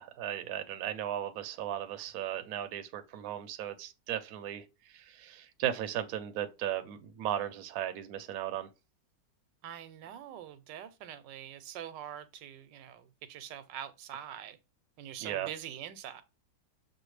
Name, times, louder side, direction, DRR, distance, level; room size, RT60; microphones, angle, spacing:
voice 1, 0.0-4.6 4.9-8.7 15.2-15.5, right 11 dB, 70° right, 0.9 m, -36 dB
voice 2, 9.6-14.6 15.0-16.2, right 10 dB, 85° right, 1.3 m, -44 dB
6.3 x 2.4 x 3.1 m
omnidirectional pair, 1.9 m